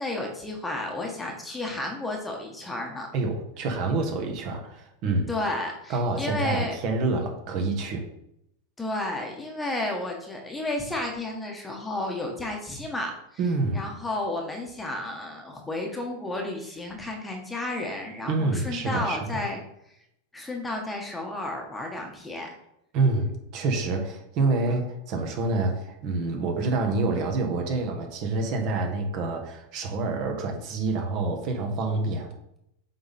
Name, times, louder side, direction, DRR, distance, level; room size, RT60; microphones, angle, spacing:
voice 1, 0.0-3.1 5.3-6.7 8.8-13.1 13.7-19.6 20.3-22.5 24.7-24.8, left 2 dB, 10° left, 1 dB, 1.2 m, -32 dB
voice 2, 3.1-5.3 5.9-8.0 13.4-13.8 18.3-19.2 22.9-32.3, right 3 dB, 45° right, 3 dB, 1.5 m, -27 dB
7.6 x 3.7 x 4.2 m, 0.77 s
supercardioid pair, 130°, 0 cm